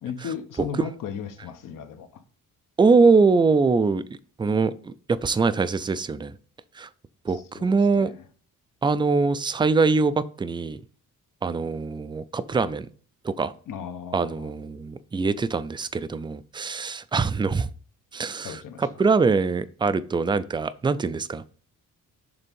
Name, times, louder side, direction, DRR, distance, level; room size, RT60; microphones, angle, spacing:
voice 1, 0.0-2.2 7.3-8.2 13.7-14.6 18.4-19.0, left 7 dB, 75° left, 1.1 m, -36 dB
voice 2, 2.8-6.3 6.7-6.9 7.2-8.1 8.8-10.8 11.4-12.9 13.2-13.5 14.1-17.7 18.1-21.4, right 4 dB, 15° right, 0.3 m, -23 dB
6.8 x 3.6 x 5.3 m
wide cardioid pair, 155°, 32 cm